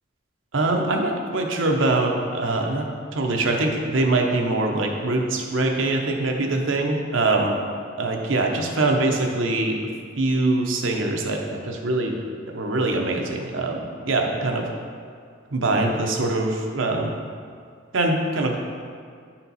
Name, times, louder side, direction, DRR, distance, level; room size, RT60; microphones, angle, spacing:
voice 1, 0.5-2.9 3.1-7.6 8.0-9.8 10.2-12.2 12.5-14.7 15.5-17.1 17.9-18.6, right 2 dB, 80° right, 2 dB, 0.9 m, -23 dB
9.5 x 4.4 x 4.1 m, 2.1 s
head